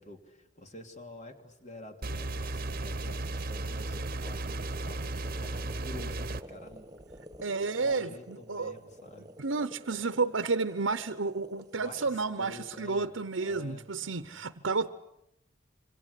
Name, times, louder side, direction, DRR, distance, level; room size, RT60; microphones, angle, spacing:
voice 1, 0.0-6.9 7.8-9.3 11.7-14.4, left 1 dB, 40° left, 3.1 m, -48 dB
sound 1, 2.0-6.4, right 2 dB, 50° right, 1.1 m, -35 dB
sound 2, 2.8-12.8, equal, 20° right, 1.6 m, -51 dB
voice 2, 7.4-8.8 9.4-14.9, right 4 dB, 85° right, 1.0 m, -31 dB
27.0 x 25.5 x 8.4 m
head